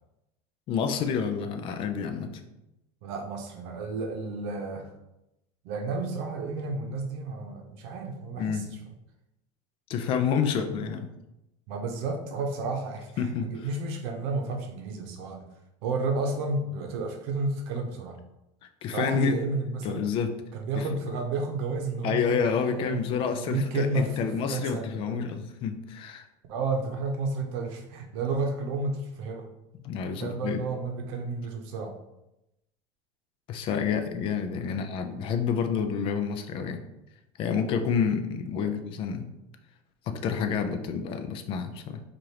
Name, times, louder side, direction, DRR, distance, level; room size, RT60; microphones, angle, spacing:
voice 1, 0.7-2.4 8.4-8.7 9.9-11.1 13.2-13.7 18.8-19.4 19.8-20.3 20.8-20.9 22.0-26.2 29.8-30.6 33.5-36.8 37.4-39.3 40.1-42.0, left 6 dB, 40° left, 7 dB, 0.4 m, -29 dB
voice 2, 3.0-4.9 5.6-8.8 11.7-15.4 15.8-18.2 18.9-20.0 20.5-23.2 23.5-25.2 26.5-29.5 30.2-31.9 34.7-34.8 38.6-38.7, right 3 dB, 70° right, 3 dB, 0.8 m, -31 dB
4.8 x 2.5 x 2.9 m, 0.90 s
supercardioid pair, 140°, 14 cm